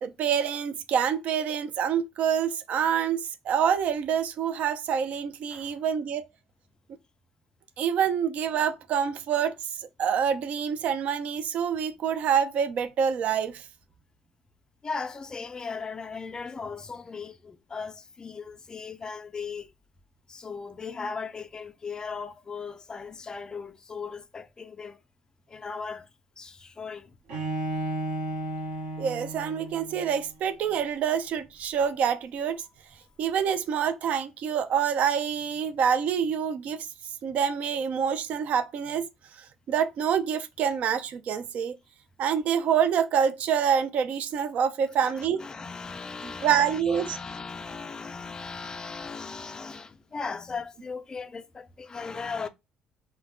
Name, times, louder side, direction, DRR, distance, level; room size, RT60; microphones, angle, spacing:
voice 1, 0.0-6.2 7.8-9.5 10.0-13.6 29.0-32.6 33.2-36.9 37.2-39.1 39.7-41.8 42.2-45.4 46.2-47.2, right 8 dB, 65° right, 0.4 m, -26 dB
voice 2, 14.8-19.7 20.3-25.0 25.5-26.1 26.4-27.1 45.0-52.5, left 5 dB, 30° left, 0.4 m, -37 dB
Bowed string instrument, 27.3-30.3, right 2 dB, 85° right, 0.9 m, -33 dB
2.1 x 2.0 x 3.6 m
supercardioid pair, 75°, 3 cm